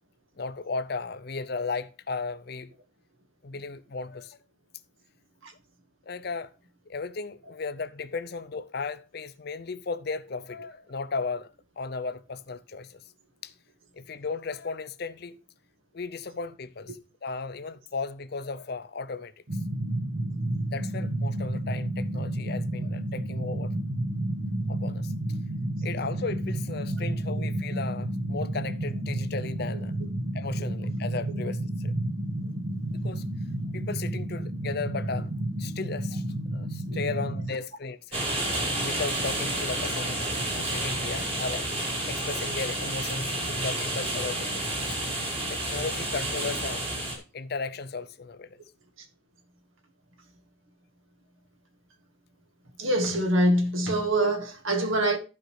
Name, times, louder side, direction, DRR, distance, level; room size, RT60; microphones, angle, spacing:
voice 1, 0.4-2.7 3.4-4.4 6.1-6.5 6.9-11.5 11.8-13.0 13.4-13.5 13.9-15.4 15.9-19.3 20.7-23.7 24.7-25.1 25.8-29.9 30.3-31.9 32.9-33.3 33.7-35.3 35.6-36.2 36.5-38.2 38.8-40.2 40.6-41.7 42.1-44.7 45.5-46.9 47.3-48.6, left 4 dB, 50° left, 0.5 m, -35 dB
sound 1, 19.5-37.5, right 1 dB, 55° right, 1.0 m, -31 dB
sound 2, 38.1-47.2, right 1 dB, 30° right, 2.3 m, -30 dB
voice 2, 52.8-55.2, right 1 dB, 75° right, 1.7 m, -24 dB
14.5 x 5.1 x 3.2 m
head